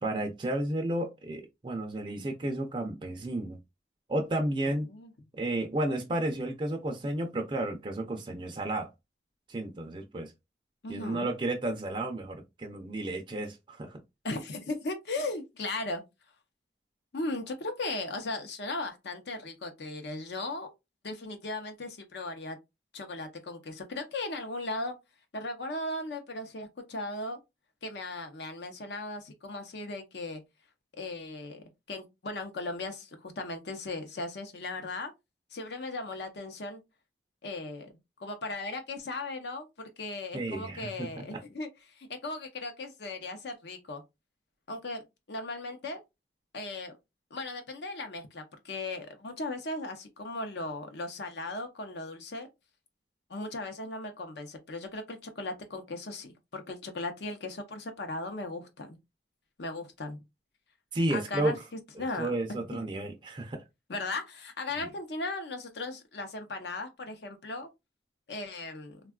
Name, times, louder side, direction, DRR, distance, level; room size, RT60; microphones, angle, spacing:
voice 1, 0.0-3.6 4.1-4.9 5.4-8.9 9.5-10.3 10.9-14.0 40.3-41.4 60.9-61.5 62.2-63.6 64.8-64.9, right 1 dB, 25° right, 0.4 m, -32 dB
voice 2, 4.6-5.1 10.8-11.3 14.2-16.0 17.1-20.7 21.0-22.6 22.9-24.9 25.3-27.4 27.8-30.4 31.0-35.1 35.5-36.8 37.4-37.9 38.2-44.0 44.7-46.0 46.5-46.9 47.3-52.5 53.3-59.0 59.6-60.2 61.1-61.6 62.0-62.8 63.9-67.7 68.3-69.0, left 2 dB, 65° left, 0.6 m, -37 dB
3.5 x 2.2 x 2.3 m
head